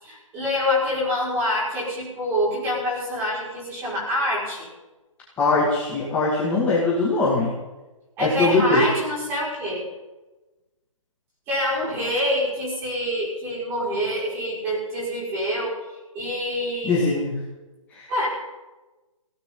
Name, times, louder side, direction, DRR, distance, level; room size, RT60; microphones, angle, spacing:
voice 1, 0.0-4.7 8.2-9.9 11.5-15.8 16.1-17.2 18.1-18.3, left 1 dB, 15° right, -6 dB, 5.4 m, -26 dB
voice 2, 5.4-7.5 8.2-8.8 16.8-17.4 17.9-18.1, left 3 dB, 10° left, -7 dB, 2.2 m, -21 dB
20.5 x 17.0 x 3.9 m, 1.1 s
hypercardioid pair, 165°, 17 cm